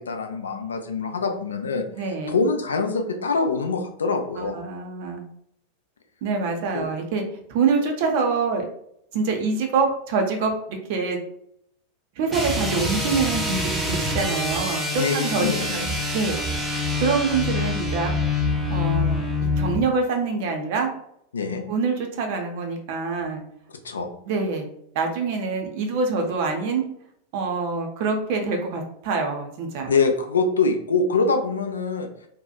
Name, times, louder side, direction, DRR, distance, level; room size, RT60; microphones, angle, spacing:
voice 1, 0.0-1.8 2.3-4.6 6.7-6.9 15.0-16.0 21.3-21.6 23.8-24.1 29.9-32.1, left 4 dB, 70° left, 5 dB, 0.4 m, -24 dB
voice 2, 2.0-2.4 4.4-5.3 6.2-7.2 7.5-8.7 9.1-11.2 12.2-15.5 15.7-15.8 16.1-16.4 17.0-18.1 18.7-19.2 19.6-20.9 21.7-23.4 24.3-24.7 24.9-26.8 27.3-29.9, right 4 dB, 50° right, 3 dB, 0.5 m, -25 dB
sound 1, 12.3-19.8, left 2 dB, 10° right, 0.6 m, -25 dB
2.7 x 2.4 x 2.3 m, 0.72 s
figure-of-eight pair, 90°, 0 cm